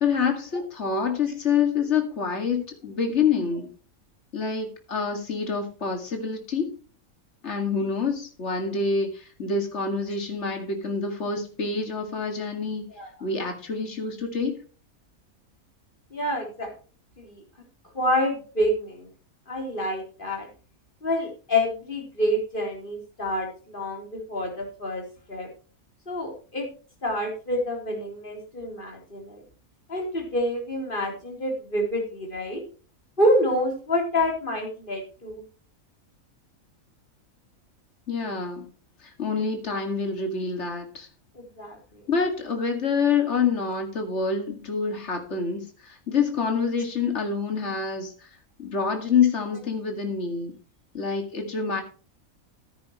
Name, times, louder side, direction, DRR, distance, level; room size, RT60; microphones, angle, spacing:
voice 1, 0.0-3.7 4.3-6.7 7.4-12.9 13.2-14.5 38.1-38.7 39.0-41.1 42.1-48.3 48.6-50.6 50.9-51.8, left 5 dB, 55° left, 4 dB, 2.5 m, -27 dB
voice 2, 16.1-16.7 17.2-17.4 17.9-19.1 19.5-20.5 21.0-25.0 25.3-25.5 26.1-26.7 27.0-29.4 29.9-32.6 33.2-35.4 41.4-42.0, left 1 dB, 35° left, 1 dB, 3.9 m, -27 dB
14.5 x 9.5 x 3.1 m, 0.38 s
omnidirectional pair, 1.5 m